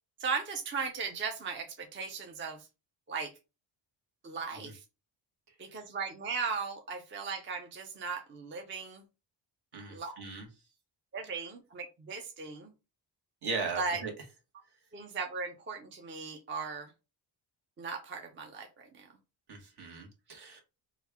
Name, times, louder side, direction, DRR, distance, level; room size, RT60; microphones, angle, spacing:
voice 1, 0.2-2.6 3.1-3.3 4.2-4.8 5.6-9.0 9.9-10.1 11.1-12.7 13.8-14.0 14.9-16.9 17.8-19.1, right 5 dB, 25° right, 0.5 m, -37 dB
voice 2, 9.7-10.5 13.4-14.1 19.5-20.6, right 4 dB, 60° right, 1.3 m, -38 dB
3.2 x 2.3 x 3.4 m
cardioid pair, 100°, 45 cm